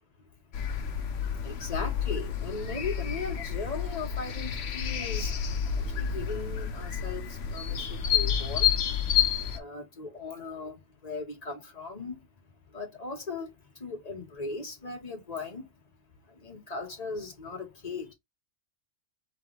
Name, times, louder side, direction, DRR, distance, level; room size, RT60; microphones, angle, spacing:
voice 1, 0.2-0.9 1.4-5.4 5.7-8.8 9.5-12.3 12.7-15.7 16.2-18.1, left 3 dB, 30° left, 1.7 m, -38 dB
sound 1, 0.5-9.6, left 8 dB, 60° left, 0.9 m, -30 dB
4.2 x 3.8 x 3.3 m
omnidirectional pair, 1.4 m